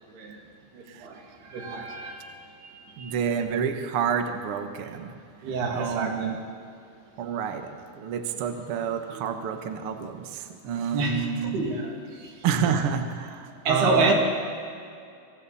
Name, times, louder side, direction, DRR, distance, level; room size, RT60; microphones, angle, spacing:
voice 1, 0.1-0.4 0.7-3.1 5.4-6.3 9.1-9.3 10.9-12.4 13.6-14.1, right 3 dB, 90° right, 0 dB, 4.8 m, -29 dB
voice 2, 3.0-5.1 5.7-6.4 7.2-11.6 12.4-14.1, right 7 dB, 60° right, 6 dB, 1.5 m, -29 dB
29.5 x 25.5 x 4.3 m, 2.4 s
omnidirectional pair, 4.4 m